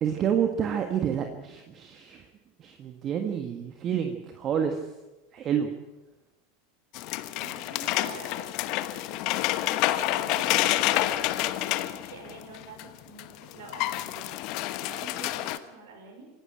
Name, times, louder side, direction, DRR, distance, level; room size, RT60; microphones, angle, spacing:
voice 1, 0.0-2.2 2.6-4.8 5.3-5.7, right 8 dB, 35° right, 6 dB, 1.7 m, -28 dB
sound 1, 6.9-12.8 13.2-13.3 13.5-15.6, left 15 dB, 50° left, 1.2 m, -28 dB
voice 2, 7.1-8.5 9.1-9.2 9.6-16.3, right 4 dB, 60° right, 3 dB, 5.4 m, -47 dB
26.0 x 12.0 x 8.9 m, 1.1 s
figure-of-eight pair, 85°, 0 cm